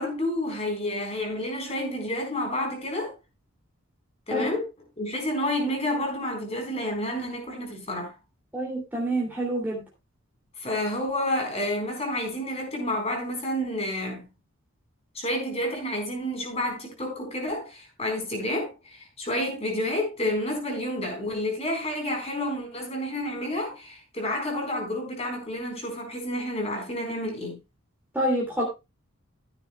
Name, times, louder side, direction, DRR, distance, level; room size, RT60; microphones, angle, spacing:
voice 1, 0.0-3.1 4.3-4.6 5.0-8.1 10.6-14.3 15.1-27.5, left 1 dB, 30° left, 4.4 m, -30 dB
voice 2, 4.3-4.6 8.5-9.8 28.1-28.6, right 1 dB, 10° right, 2.8 m, -27 dB
14.5 x 9.9 x 2.3 m
head